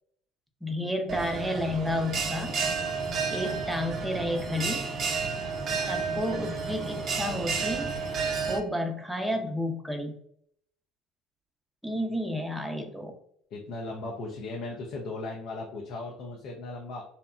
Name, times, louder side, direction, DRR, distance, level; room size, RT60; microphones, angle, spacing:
voice 1, 0.6-2.6 3.3-4.9 5.9-7.9 8.5-10.2 11.8-13.1, left 1 dB, 5° right, 3 dB, 0.6 m, -31 dB
Bell, 1.1-8.6, right 4 dB, 45° right, 0.5 m, -31 dB
voice 2, 13.5-17.0, left 2 dB, 60° left, -1 dB, 0.5 m, -37 dB
2.8 x 2.1 x 2.4 m, 0.68 s
hypercardioid pair, 75°, 0 cm